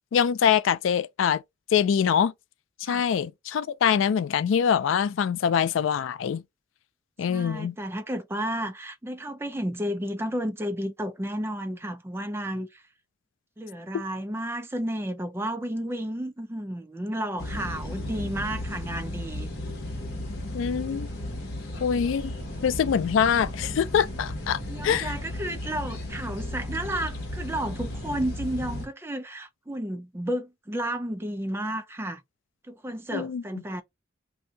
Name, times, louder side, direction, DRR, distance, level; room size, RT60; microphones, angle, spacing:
voice 1, 0.1-1.4 1.7-2.3 2.8-6.4 7.2-7.7 20.5-21.1 21.8-22.3 22.6-25.1 33.1-33.6, left 7 dB, 90° left, 0.3 m, -24 dB
voice 2, 7.3-12.8 13.6-19.5 24.7-32.2 32.7-33.8, right 1 dB, 15° right, 0.4 m, -32 dB
sound 1, 17.4-28.9, left 1 dB, 55° left, 1.1 m, -35 dB
2.7 x 2.6 x 3.3 m
head